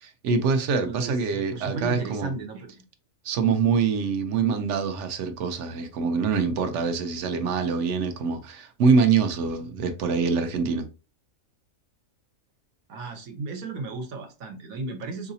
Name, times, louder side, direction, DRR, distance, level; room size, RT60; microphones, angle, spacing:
voice 1, 0.0-2.3 3.2-10.9, right 5 dB, 65° right, 0.8 m, -24 dB
voice 2, 0.8-2.8 12.9-15.3, right 3 dB, 85° right, 1.2 m, -35 dB
3.8 x 2.7 x 2.7 m
omnidirectional pair, 1.4 m